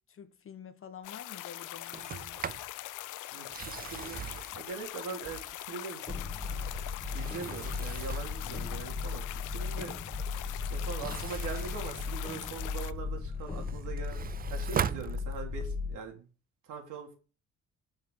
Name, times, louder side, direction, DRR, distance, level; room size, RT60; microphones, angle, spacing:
voice 1, 0.1-2.5, left 7 dB, 45° left, 1.2 m, -48 dB
sound 1, 1.0-12.9, left 15 dB, 85° left, 0.6 m, -42 dB
Sliding door, 1.9-2.7 3.4-5.7 6.3-8.4 10.8-12.8 13.2-15.7, right 8 dB, 30° right, 0.4 m, -40 dB
voice 2, 3.3-4.2 4.6-6.1 7.1-9.9 10.7-14.2 14.5-16.3 16.7-17.1, right 5 dB, 85° right, 3.1 m, -42 dB
sound 2, 6.1-16.0, left 4 dB, 15° left, 1.7 m, -36 dB
7.2 x 5.7 x 6.4 m
cardioid pair, 90°, 30 cm